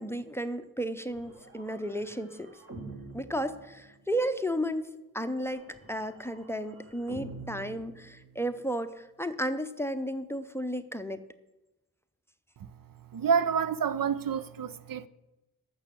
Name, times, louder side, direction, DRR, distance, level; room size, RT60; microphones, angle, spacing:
voice 1, 0.0-2.5 3.1-11.2, equal, 5° left, 0.6 m, -33 dB
sound 1, 1.1-4.3 5.5-8.7, right 2 dB, 40° right, 2.3 m, -48 dB
voice 2, 13.1-15.1, right 7 dB, 65° right, 0.6 m, -28 dB
13.5 x 6.2 x 7.4 m
wide cardioid pair, 115°, 36 cm